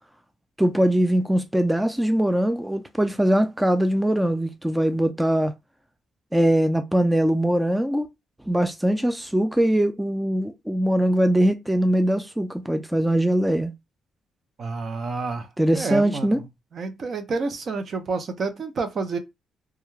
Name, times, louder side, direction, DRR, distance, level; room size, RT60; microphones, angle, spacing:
voice 1, 0.6-5.5 6.3-8.1 8.5-13.7 15.6-16.4, right 1 dB, 5° right, 0.3 m, -21 dB
voice 2, 14.6-15.5 15.7-16.4 16.7-19.2, right 4 dB, 50° right, 0.6 m, -29 dB
2.3 x 2.1 x 3.1 m
cardioid pair, 90°, 0 cm